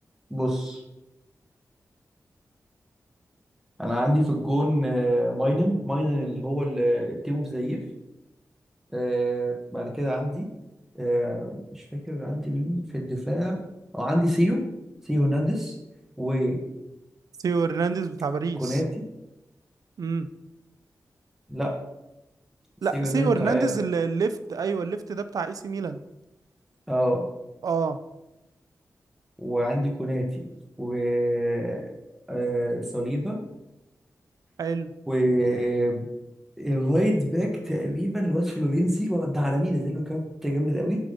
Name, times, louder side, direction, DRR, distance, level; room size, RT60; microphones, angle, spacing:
voice 1, 0.3-0.8 3.8-7.8 8.9-10.5 10.9-13.6 13.9-14.6 15.0-15.7 16.2-16.6 18.6-18.8 21.5-21.7 22.9-23.6 26.9-27.2 29.4-30.4 30.8-31.8 32.3-33.4 35.1-36.1 36.6-41.0, equal, 5° right, -1 dB, 1.3 m, -25 dB
voice 2, 17.4-18.8 20.0-20.3 22.8-26.0 27.6-28.0 34.6-34.9, right 5 dB, 75° right, 11 dB, 0.5 m, -27 dB
7.4 x 3.6 x 5.2 m, 0.94 s
wide cardioid pair, 100°, 6 cm